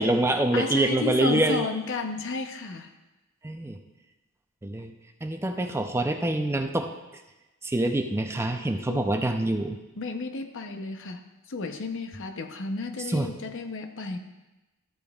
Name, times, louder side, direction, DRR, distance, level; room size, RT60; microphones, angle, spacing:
voice 1, 0.0-1.7 3.4-3.8 4.6-4.9 5.2-6.9 7.6-9.8 13.1-13.3, right 1 dB, 10° right, 5 dB, 0.5 m, -25 dB
voice 2, 0.5-2.9 8.9-9.1 9.9-11.2 11.5-14.2, left 3 dB, 60° left, 6 dB, 0.7 m, -32 dB
13.0 x 8.6 x 2.4 m, 1.1 s
head